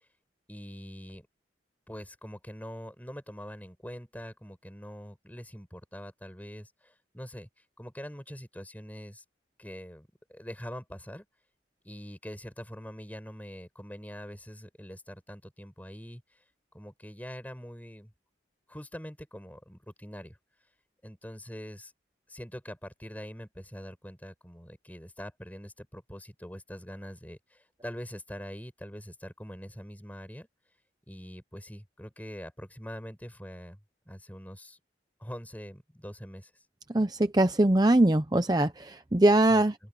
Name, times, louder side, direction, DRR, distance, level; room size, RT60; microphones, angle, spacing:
voice 1, 0.5-1.3 1.9-7.5 7.8-9.2 9.6-11.2 11.8-16.4 16.7-18.1 18.7-20.4 21.0-21.9 22.3-30.5 31.1-33.8 34.1-34.8 35.2-36.5 39.5-39.6, equal, 10° left, 5.6 m, -43 dB
voice 2, 36.9-39.7, right 1 dB, 20° right, 0.7 m, -22 dB
open air
head